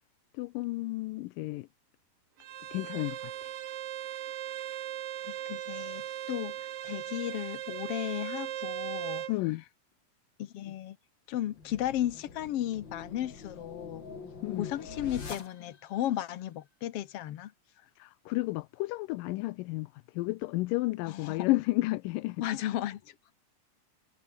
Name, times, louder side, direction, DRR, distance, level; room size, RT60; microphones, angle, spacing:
voice 1, 0.4-1.7 2.7-3.2 9.3-9.6 14.4-14.7 18.0-19.9 20.2-22.4, left 20 dB, 85° left, 2.3 m, -31 dB
Bowed string instrument, 2.4-9.3, right 12 dB, 80° right, 3.2 m, -38 dB
voice 2, 5.2-9.3 10.4-11.0 11.3-14.0 14.6-17.5 21.1-21.5 22.4-23.1, left 12 dB, 70° left, 1.4 m, -35 dB
sound 1, 11.4-16.0, left 5 dB, 35° left, 3.5 m, -44 dB
omnidirectional pair, 3.9 m